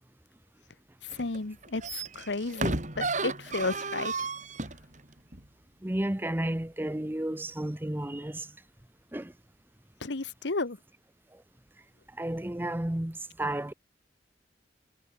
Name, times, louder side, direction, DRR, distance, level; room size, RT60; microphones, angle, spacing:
sound 1, 1.1-1.4 1.6-4.8 5.3-5.4, right 3 dB, 40° right, 3.9 m, -33 dB
voice 1, 1.2-4.3 10.0-10.8, left 3 dB, 70° left, 1.1 m, -33 dB
voice 2, 5.8-8.5 9.1-9.3 12.2-13.7, right 1 dB, 10° right, 0.7 m, -32 dB
head